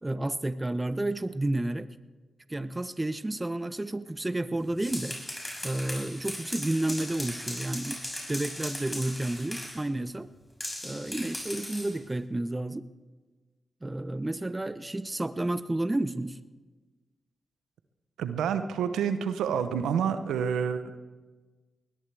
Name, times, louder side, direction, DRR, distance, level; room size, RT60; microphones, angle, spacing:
voice 1, 0.0-1.9 2.5-5.2 5.6-8.0 8.3-10.3 10.8-12.9 13.8-16.4, right 1 dB, 25° right, 13 dB, 0.9 m, -31 dB
sound 1, 4.6-9.8 10.6-12.0, left 1 dB, 15° left, 6.5 m, -38 dB
voice 2, 18.2-20.9, right 7 dB, 90° right, 10 dB, 0.8 m, -28 dB
21.5 x 19.5 x 3.4 m, 1.3 s
supercardioid pair, 40°, 0 cm